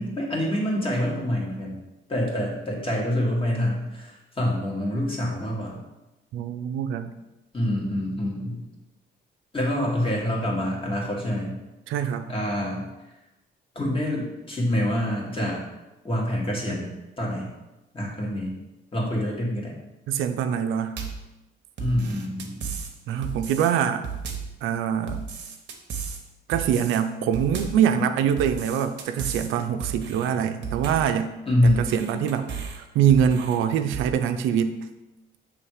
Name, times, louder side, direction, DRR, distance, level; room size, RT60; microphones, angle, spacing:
voice 1, 0.0-1.8 2.1-5.8 7.5-8.6 9.5-11.5 12.3-12.9 13.8-15.6 16.0-16.9 17.2-17.5 17.9-18.5 18.9-19.7 21.8-22.7 31.5-31.8, left 1 dB, 25° left, -3 dB, 2.0 m, -26 dB
voice 2, 6.3-7.1 11.9-12.3 20.1-21.0 23.1-24.1 24.6-25.2 26.5-31.3 31.6-32.5 32.7-34.8, right 8 dB, 90° right, 9 dB, 0.5 m, -24 dB
sound 1, 21.0-21.3 21.8-22.9 23.2-23.7 24.0-24.6 25.1-26.2 26.5-27.0 27.3-27.9 28.4-29.5 29.8-30.3 30.6-31.1 31.7-32.8 33.1-33.6 33.9-34.1, right 6 dB, 65° right, 1.0 m, -34 dB
6.4 x 3.3 x 4.8 m, 1.0 s
cardioid pair, 90°, 20 cm